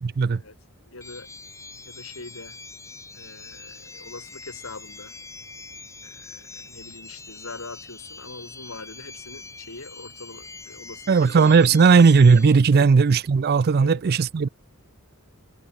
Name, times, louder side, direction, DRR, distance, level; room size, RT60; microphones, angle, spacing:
voice 1, 0.0-0.4 11.1-14.5, right 5 dB, 45° right, 0.4 m, -16 dB
voice 2, 0.9-1.3 1.9-2.6 3.1-5.2 6.0-12.0 12.7-12.9 13.8-14.0, left 3 dB, 70° left, 4.0 m, -42 dB
sound 1, 1.0-12.5, left 3 dB, 15° left, 3.6 m, -43 dB
head